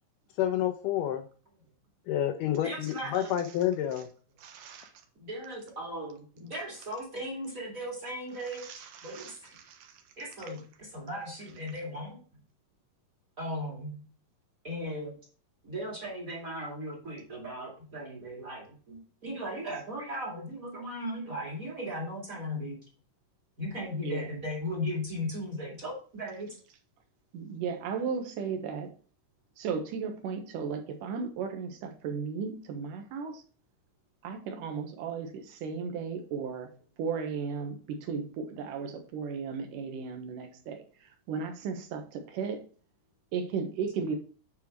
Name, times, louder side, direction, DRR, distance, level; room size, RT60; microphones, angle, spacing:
voice 1, 0.4-1.3 2.1-4.1, left 11 dB, 80° left, 7 dB, 2.2 m, -29 dB
voice 2, 2.6-3.4 5.2-9.6 10.2-12.2 13.4-14.1 14.6-15.2 15.6-22.8 23.6-26.6, equal, 25° right, 0 dB, 2.3 m, -37 dB
voice 3, 4.4-4.9 8.6-9.9 23.9-24.3 27.3-28.9 29.6-33.4 34.2-36.7 37.0-42.6 43.3-44.2, right 6 dB, 75° right, 5 dB, 2.7 m, -35 dB
9.2 x 4.8 x 4.6 m, 0.40 s
omnidirectional pair, 3.9 m